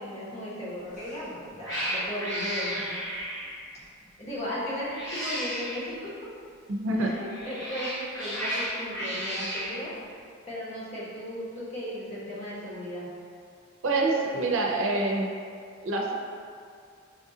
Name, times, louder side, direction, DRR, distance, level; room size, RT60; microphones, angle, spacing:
voice 1, 0.0-2.9 4.2-6.1 7.0-9.9 10.5-13.1, left 1 dB, 35° left, -8 dB, 1.1 m, -36 dB
Cat, 0.9-1.2 1.6-3.7 4.8-5.9 7.2-9.8, equal, 65° left, 0.9 m, -33 dB
voice 2, 6.7-7.1 13.8-15.3 15.8-16.1, right 2 dB, 85° right, 0 dB, 0.5 m, -26 dB
5.8 x 2.4 x 2.7 m, 2.2 s
head